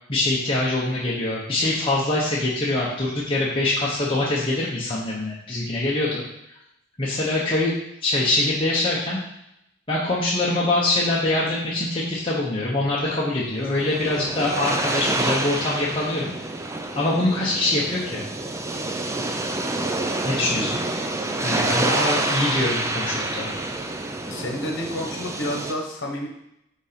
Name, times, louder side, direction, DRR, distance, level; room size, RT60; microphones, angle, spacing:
voice 1, 0.1-6.2 7.0-9.2 9.9-16.3 16.9-18.2 20.2-20.8 21.4-23.5, left 2 dB, 25° left, -6 dB, 1.0 m, -24 dB
sound 1, 13.5-25.7, right 2 dB, 15° right, 0.4 m, -28 dB
voice 2, 20.5-20.8 22.1-22.4 24.3-26.3, left 1 dB, 65° left, 1 dB, 1.2 m, -30 dB
5.2 x 4.0 x 5.1 m, 0.80 s
head